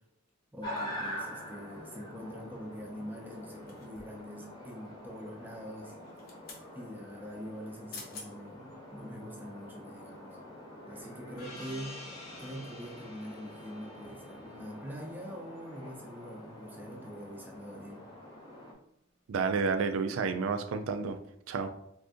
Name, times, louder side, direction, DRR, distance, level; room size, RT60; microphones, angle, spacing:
voice 1, 0.5-6.0 6.7-10.4 10.9-12.0 12.4-18.1, equal, 10° right, 0 dB, 0.5 m, -44 dB
sound 1, 0.6-18.7, left 1 dB, 20° left, 0.8 m, -46 dB
sound 2, 3.7-4.3 6.0-6.7 7.6-7.7 7.9-8.3 8.8-9.0, left 3 dB, 50° left, 0.7 m, -47 dB
Gong, 11.4-16.4, left 1 dB, 85° left, 0.8 m, -50 dB
voice 2, 19.3-21.2 21.5-21.7, right 5 dB, 85° right, 7 dB, 0.4 m, -30 dB
2.6 x 2.5 x 3.5 m, 0.78 s
head